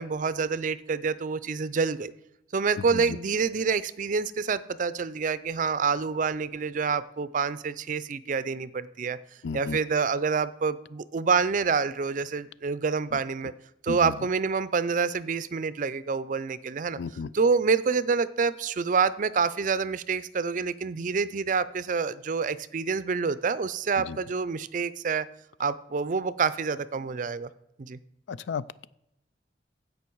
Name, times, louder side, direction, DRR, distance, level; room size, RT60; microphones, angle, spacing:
voice 1, 0.0-2.1 2.5-9.2 9.5-13.5 13.8-17.0 17.3-25.3 25.6-27.5 27.8-28.0, right 5 dB, 45° right, 16 dB, 0.4 m, -27 dB
voice 2, 2.8-3.2 9.4-9.8 13.1-13.2 13.9-14.2 17.0-17.3 24.0-24.2 28.3-28.9, left 5 dB, 80° left, 18 dB, 0.4 m, -34 dB
15.5 x 5.3 x 4.6 m, 0.82 s
head